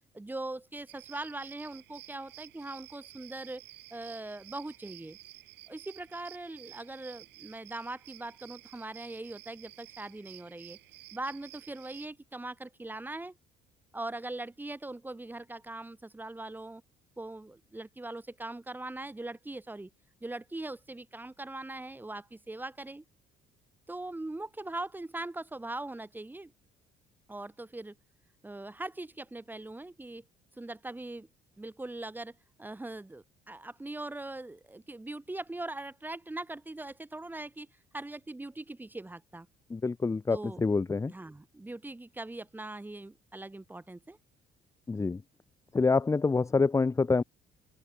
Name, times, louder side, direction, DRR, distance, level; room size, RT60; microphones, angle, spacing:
voice 1, 0.1-3.6 3.9-5.2 5.7-10.8 11.1-13.3 13.9-16.8 17.2-19.9 20.2-23.0 23.9-26.5 27.3-27.9 28.4-30.2 30.6-31.3 31.6-32.3 32.6-37.7 37.9-39.5 40.3-40.6 41.1-44.2, right 2 dB, 10° right, 3.3 m, -41 dB
sound 1, 0.9-12.1, right 18 dB, 85° right, 7.3 m, -52 dB
voice 2, 39.7-41.1 44.9-45.2 45.7-47.2, left 4 dB, 20° left, 1.0 m, -26 dB
open air
cardioid pair, 110°, 17 cm